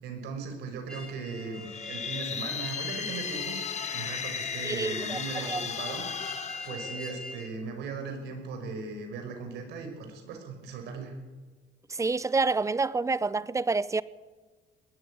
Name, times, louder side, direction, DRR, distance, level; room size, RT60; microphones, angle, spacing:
voice 1, 0.0-6.3 6.6-11.1, right 4 dB, 80° right, 5.6 m, -38 dB
sound 1, 0.9-7.5, left 2 dB, 5° left, 5.6 m, -43 dB
sound 2, 1.5-7.5, left 7 dB, 40° left, 1.8 m, -36 dB
voice 2, 4.6-5.7 11.9-14.0, right 3 dB, 20° right, 0.7 m, -28 dB
20.0 x 13.5 x 9.7 m
cardioid pair, 110°, 17 cm